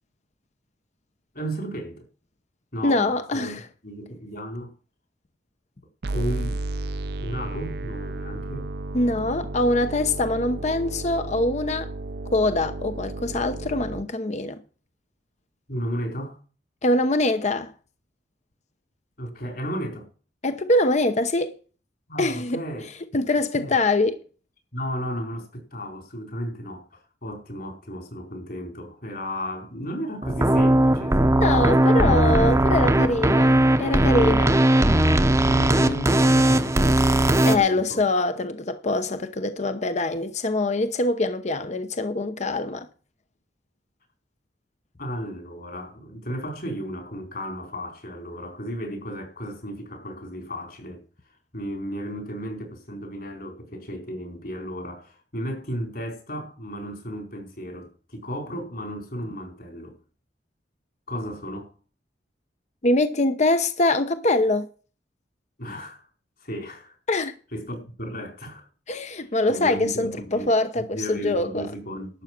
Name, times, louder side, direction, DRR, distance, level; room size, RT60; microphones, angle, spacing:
voice 1, 1.3-2.1 2.7-4.7 6.1-6.6 7.2-8.7 15.7-16.4 19.2-20.1 22.1-22.9 23.5-23.8 24.7-31.4 35.4-38.0 45.0-51.0 51.5-60.0 61.1-61.7 65.6-66.1 66.4-68.7 69.1-69.2 69.5-70.5 70.8-72.2, equal, 55° left, 4.6 m, -34 dB
voice 2, 2.8-3.6 8.9-11.9 12.3-14.6 16.8-17.7 20.4-21.6 22.2-22.6 23.1-24.2 31.4-34.6 37.5-42.9 62.8-64.7 67.1-67.3 68.9-71.7, left 2 dB, 40° left, 0.9 m, -23 dB
sound 1, 6.0-14.0, right 2 dB, 65° right, 0.6 m, -33 dB
sound 2, 30.2-37.6, right 1 dB, 15° right, 0.8 m, -19 dB
12.0 x 8.0 x 6.0 m
head